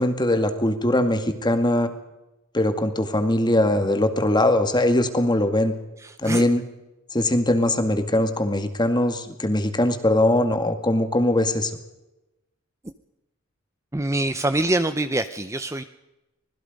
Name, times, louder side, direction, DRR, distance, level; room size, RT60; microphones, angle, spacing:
voice 1, 0.0-1.9 2.5-5.7 6.2-6.6 7.1-11.7, left 1 dB, 20° left, 7 dB, 2.0 m, -21 dB
voice 2, 6.0-6.4 13.9-15.8, right 2 dB, 15° right, 10 dB, 0.7 m, -24 dB
25.5 x 20.0 x 5.3 m, 0.97 s
head